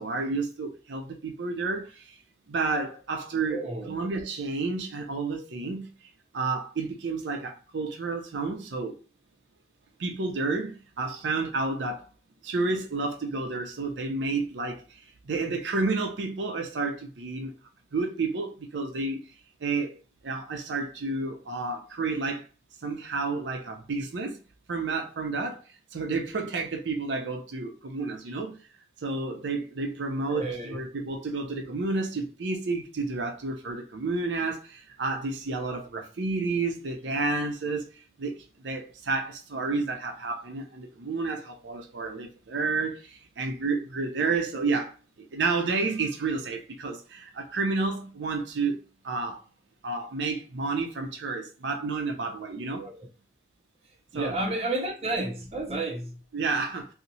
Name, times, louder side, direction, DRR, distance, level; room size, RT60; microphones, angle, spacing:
voice 1, 0.0-1.8 2.5-3.6 3.9-5.9 6.3-8.9 10.0-12.0 12.4-14.8 15.3-17.5 17.9-19.2 19.6-19.9 20.2-22.4 22.8-24.4 24.7-25.6 25.9-28.5 29.0-34.6 35.0-37.8 38.2-38.3 38.6-43.0 43.4-44.9 45.3-48.8 49.0-49.4 49.8-52.8 54.1-54.4 56.3-56.9, right 3 dB, 90° right, 0.6 m, -30 dB
voice 2, 3.5-4.0 30.3-30.8 52.8-53.0 54.1-56.2, right 2 dB, 35° right, 0.6 m, -31 dB
2.8 x 2.1 x 4.0 m
head